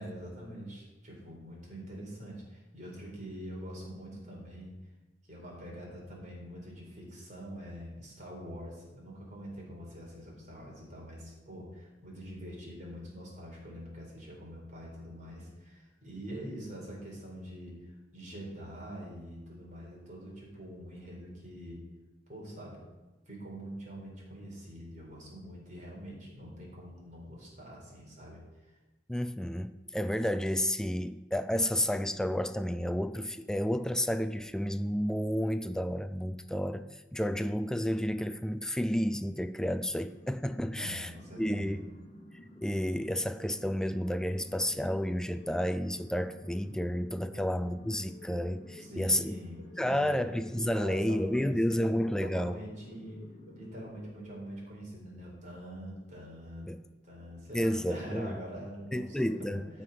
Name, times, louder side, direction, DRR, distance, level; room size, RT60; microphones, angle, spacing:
voice 1, 0.0-4.8 5.2-21.8 22.3-22.8 23.3-28.7 40.6-41.8 48.8-50.3 50.7-53.2 53.5-56.7 57.0-59.8, equal, 45° right, 4.3 m, -45 dB
voice 2, 29.1-41.1 41.4-41.9 42.6-49.3 49.8-52.6 56.7-56.8 57.5-58.4 58.9-59.8, equal, 5° left, 0.3 m, -31 dB
sound 1, 40.0-54.1, left 1 dB, 40° left, 1.4 m, -53 dB
sound 2, 45.1-54.4, left 2 dB, 80° right, 3.0 m, -54 dB
14.5 x 5.8 x 5.7 m
head